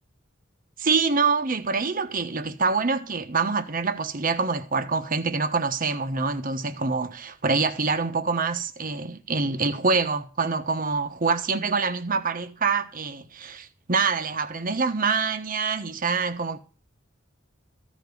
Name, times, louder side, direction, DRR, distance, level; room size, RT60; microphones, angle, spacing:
voice 1, 0.8-16.6, right 4 dB, 45° right, 1.2 m, -25 dB
15.0 x 5.3 x 9.6 m
head